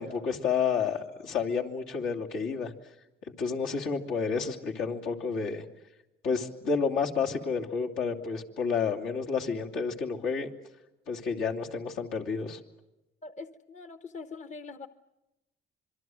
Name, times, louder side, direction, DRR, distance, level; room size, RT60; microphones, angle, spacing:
voice 1, 0.0-2.7 3.4-5.6 6.2-10.5 11.1-12.6, left 5 dB, 80° left, -1 dB, 2.9 m, -30 dB
voice 2, 13.2-14.9, left 4 dB, 35° left, 11 dB, 1.0 m, -43 dB
26.5 x 23.0 x 7.8 m, 0.97 s
cardioid pair, 90°, 20 cm